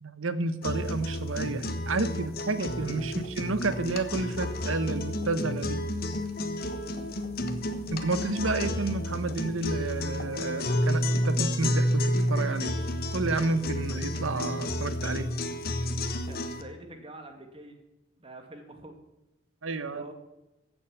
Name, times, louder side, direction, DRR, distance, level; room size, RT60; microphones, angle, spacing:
voice 1, 0.0-5.8 7.9-12.7 13.1-15.3 19.6-20.0, right 3 dB, 90° right, 13 dB, 1.0 m, -30 dB
sound 1, 0.6-16.6, left 1 dB, 50° left, 1.2 m, -30 dB
voice 2, 6.8-7.1 14.0-14.2 16.3-17.8 18.2-19.0 19.9-20.1, right 1 dB, 30° right, 5 dB, 1.9 m, -46 dB
15.0 x 7.3 x 7.2 m, 0.95 s
head